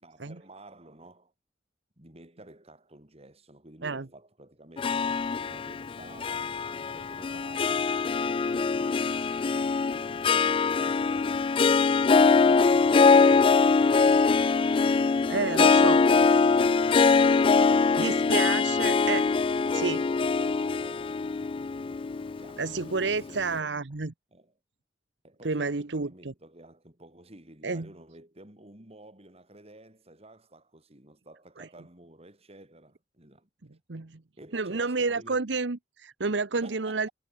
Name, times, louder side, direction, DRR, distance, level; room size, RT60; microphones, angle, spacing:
voice 1, 0.0-1.3 2.0-9.0 9.4-11.5 12.1-13.9 15.3-16.4 16.9-21.4 22.4-23.8 24.3-24.5 25.2-33.5 34.4-35.5 36.6-37.1, right 1 dB, 35° right, 4.8 m, -51 dB
Harp, 4.8-23.2, left 4 dB, 30° left, 0.3 m, -23 dB
sound 1, 5.4-23.3, left 2 dB, 50° left, 4.4 m, -56 dB
voice 2, 15.3-16.0 18.0-19.2 19.7-20.0 22.6-24.1 25.4-26.3 27.6-27.9 31.6-31.7 33.9-34.2 34.5-37.1, right 4 dB, 75° right, 1.0 m, -30 dB
head